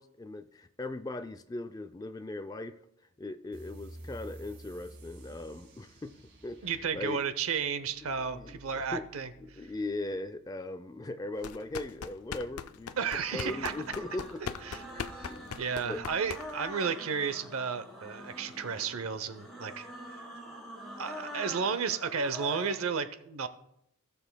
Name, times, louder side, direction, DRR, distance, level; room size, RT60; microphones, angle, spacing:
voice 1, 0.0-2.8 3.2-6.1 6.4-7.2 8.0-9.1 9.4-14.6 14.9-16.0, left 2 dB, 15° left, 10 dB, 0.3 m, -39 dB
sound 1, 3.5-10.6, right 1 dB, 60° right, 2.2 m, -51 dB
voice 2, 6.6-9.6 13.0-13.7 14.7-14.8 15.2-15.3 15.6-19.9 21.0-23.5, right 6 dB, 80° right, 12 dB, 0.7 m, -33 dB
sound 2, 11.4-16.7, left 6 dB, 85° left, 0.4 m, -41 dB
sound 3, 12.9-22.8, equal, ahead, 2.3 m, -45 dB
17.0 x 6.9 x 2.2 m, 0.77 s
head